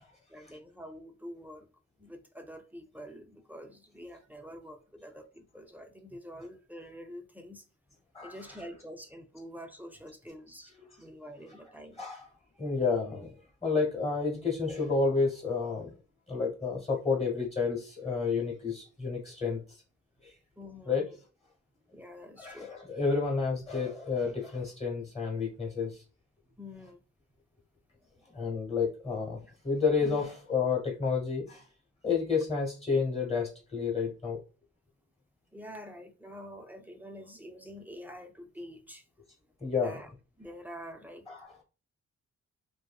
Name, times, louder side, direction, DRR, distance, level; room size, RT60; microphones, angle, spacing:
voice 1, 0.3-1.7 2.0-7.6 8.2-10.7 11.0-12.0 20.6-21.2 21.9-22.7 26.6-27.0 28.1-28.2 35.5-39.0 39.8-40.1 40.4-41.3, equal, 5° right, 0.4 m, -46 dB
voice 2, 8.1-8.7 10.7-10.9 11.5-11.6 12.0-12.3 12.6-13.3 13.6-15.9 16.3-19.6 20.2-20.3 20.8-21.1 22.4-26.0 28.3-31.6 32.0-34.4 39.6-40.0 41.3-41.6, left 5 dB, 20° left, 1.0 m, -30 dB
2.6 x 2.6 x 2.2 m
wide cardioid pair, 115°, 29 cm